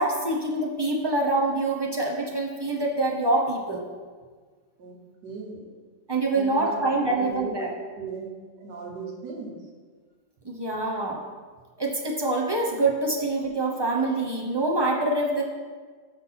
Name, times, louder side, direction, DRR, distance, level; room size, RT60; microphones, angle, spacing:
voice 1, 0.0-3.8 6.1-7.7 10.4-11.2 11.8-15.4, right 2 dB, 35° right, -2 dB, 0.4 m, -25 dB
voice 2, 4.8-5.7 6.3-8.3 8.6-9.7, right 3 dB, 90° right, -1 dB, 1.8 m, -37 dB
6.1 x 5.2 x 5.8 m, 1.5 s
omnidirectional pair, 1.8 m